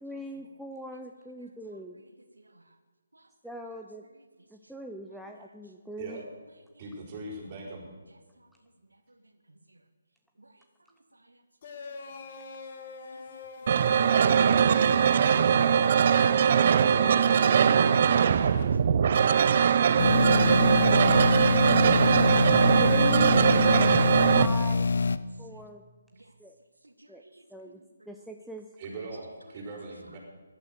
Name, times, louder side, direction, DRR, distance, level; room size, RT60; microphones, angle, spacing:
voice 1, 0.0-2.0 3.4-4.0 4.5-6.2 16.9-17.2 22.8-23.9 24.3-24.9 25.4-25.8 26.4-26.6 27.1-27.2 27.5-28.7, right 1 dB, ahead, 1 dB, 0.7 m, -41 dB
voice 2, 6.8-7.8 28.8-30.2, right 2 dB, 30° right, -2 dB, 5.2 m, -40 dB
sound 1, 11.6-18.6, left 4 dB, 40° left, 2.1 m, -43 dB
voice 3, 13.0-14.3 25.5-25.6 26.2-26.3 26.8-27.8, right 2 dB, 80° right, 7 dB, 1.4 m, -56 dB
sound 2, 13.7-24.5, right 7 dB, 45° right, 0.6 m, -21 dB
sound 3, 20.0-25.2, left 4 dB, 60° left, 0.7 m, -25 dB
16.5 x 11.5 x 6.8 m, 1.4 s
figure-of-eight pair, 145°, 0 cm